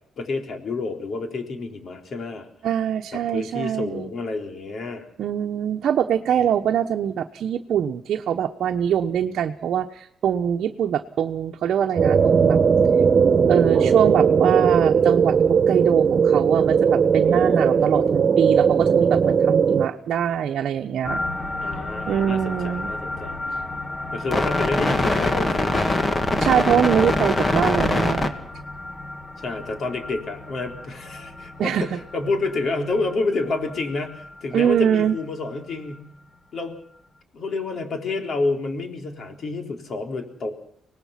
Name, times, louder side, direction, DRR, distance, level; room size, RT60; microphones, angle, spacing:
voice 1, 0.2-2.5 3.3-5.1 6.4-6.6 17.1-17.6 21.6-23.4 24.1-25.9 29.4-36.1 36.5-36.8 37.3-40.5, left 3 dB, 55° left, 4 dB, 3.9 m, -29 dB
voice 2, 2.6-4.1 5.2-12.6 13.5-21.2 22.1-22.9 26.4-28.3 31.6-32.0 34.5-35.2, right 9 dB, 70° right, 3 dB, 1.0 m, -23 dB
sound 1, 12.0-19.9, right 6 dB, 45° right, 1.5 m, -18 dB
sound 2, 21.0-32.8 33.1-33.2 33.4-33.7 34.1-34.3, left 2 dB, 25° left, 2.3 m, -26 dB
25.0 x 19.0 x 5.9 m, 0.68 s
cardioid pair, 90°, 0 cm